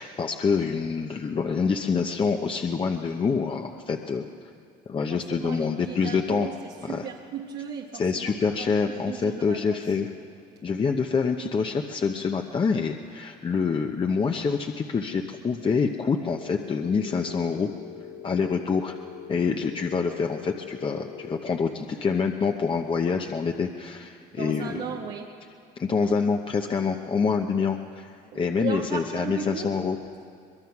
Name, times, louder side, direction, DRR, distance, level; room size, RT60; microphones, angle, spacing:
voice 1, 0.0-4.2 4.9-6.5 6.9-7.0 7.9-10.1 10.6-17.7 18.2-19.0 19.3-24.8 25.8-30.0, left 5 dB, 30° left, 4 dB, 0.9 m, -26 dB
voice 2, 5.1-8.5 8.8-9.9 24.3-25.4 26.0-26.1 28.3-29.8, right 7 dB, 80° right, -1 dB, 1.4 m, -36 dB
Telephone, 16.3-21.3, left 10 dB, 70° left, 1.9 m, -42 dB
23.5 x 21.0 x 6.0 m, 2.3 s
cardioid pair, 110°, 17 cm